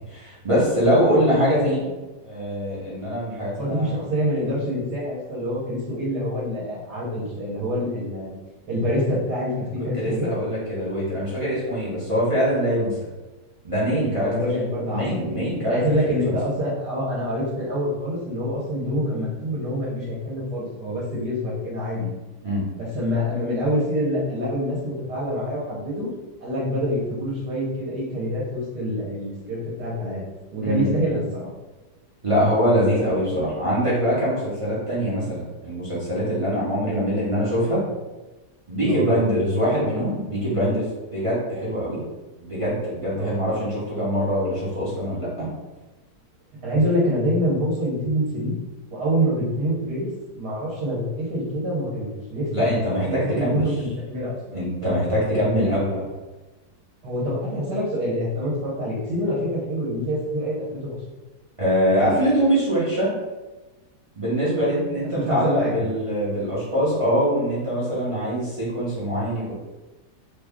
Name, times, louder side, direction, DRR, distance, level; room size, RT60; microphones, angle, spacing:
voice 1, 0.1-1.9 2.2-4.0 9.9-12.9 13.6-14.3 14.9-15.8 16.1-16.3 22.4-22.6 30.6-31.0 32.2-37.8 38.7-42.0 42.4-45.5 52.5-53.6 54.5-56.0 61.6-63.1 64.2-69.5, equal, 30° right, -8 dB, 0.6 m, -23 dB
voice 2, 3.6-8.4 8.7-10.3 14.2-15.3 15.6-22.1 22.8-26.1 26.4-30.2 30.5-31.5 38.8-39.0 43.2-43.4 46.6-48.6 48.9-50.1 50.3-55.0 57.0-61.0 65.1-65.8, equal, 70° right, -6 dB, 1.4 m, -26 dB
3.1 x 2.3 x 3.5 m, 1.1 s
omnidirectional pair, 1.8 m